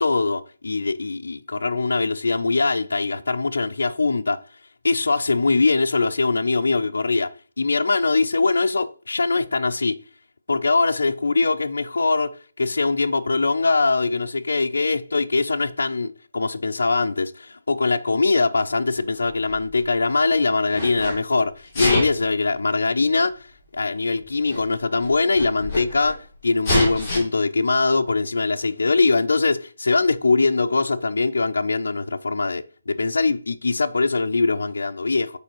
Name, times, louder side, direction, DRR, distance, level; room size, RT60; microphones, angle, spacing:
voice 1, 0.0-4.4 4.8-10.0 10.5-35.4, left 3 dB, 80° left, 0.5 m, -22 dB
Sneeze, 19.2-20.2 20.6-21.2 21.7-22.3 23.2-23.3 24.2-24.3 24.5-24.6 25.0-26.1 26.6-27.2, left 2 dB, 15° left, 2.9 m, -25 dB
6.9 x 4.7 x 3.1 m
hypercardioid pair, 175°, 0 cm